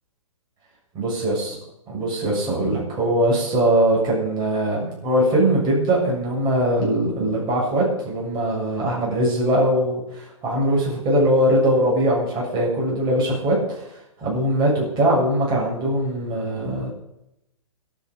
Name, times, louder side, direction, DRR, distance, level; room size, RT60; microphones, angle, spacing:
voice 1, 1.0-1.6 1.9-13.9 14.2-16.9, right 1 dB, 25° right, -4 dB, 7.0 m, -21 dB
18.5 x 10.0 x 5.4 m, 0.85 s
figure-of-eight pair, 125°, 18 cm